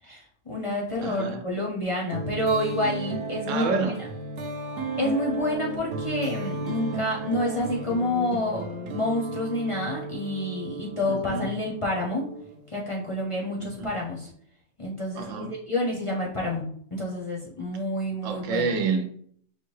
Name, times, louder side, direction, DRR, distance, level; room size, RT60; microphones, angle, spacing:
voice 1, 0.0-3.7 5.0-12.3 12.7-14.3 14.8-18.7, left 1 dB, 35° left, 0.6 m, -28 dB
voice 2, 1.0-1.4 3.5-4.0 6.7-6.8 11.0-11.5 13.6-13.9 15.1-15.5 18.2-19.1, right 4 dB, 90° right, 1.0 m, -28 dB
sound 1, 2.1-12.7, right 3 dB, 60° right, 0.8 m, -34 dB
5.6 x 2.2 x 3.1 m
omnidirectional pair, 1.3 m